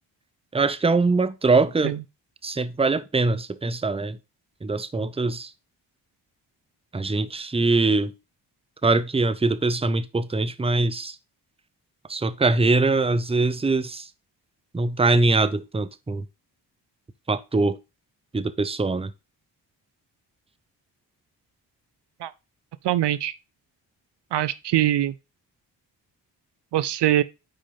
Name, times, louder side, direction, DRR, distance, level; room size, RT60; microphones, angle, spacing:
voice 1, 0.5-2.0 2.4-4.2 4.6-5.5 6.9-8.1 8.8-11.2 12.1-14.1 14.7-16.2 17.3-17.8 18.3-19.1, right 3 dB, 15° right, 0.7 m, -22 dB
voice 2, 22.8-23.3 24.3-25.1 26.7-27.2, right 12 dB, 65° right, 0.6 m, -22 dB
5.6 x 4.8 x 5.2 m
supercardioid pair, 50°, 44 cm